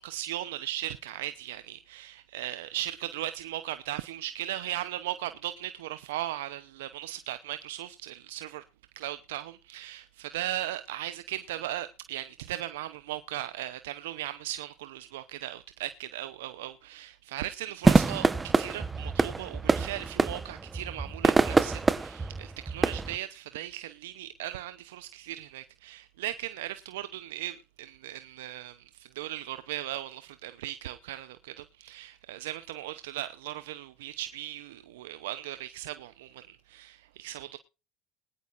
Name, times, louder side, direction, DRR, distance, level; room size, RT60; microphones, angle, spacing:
voice 1, 0.0-8.6 9.0-37.6, right 14 dB, 80° right, 0.7 m, -38 dB
sound 1, 17.8-23.2, right 3 dB, 20° right, 1.0 m, -25 dB
21.0 x 10.5 x 2.5 m
hypercardioid pair, 80°, 0 cm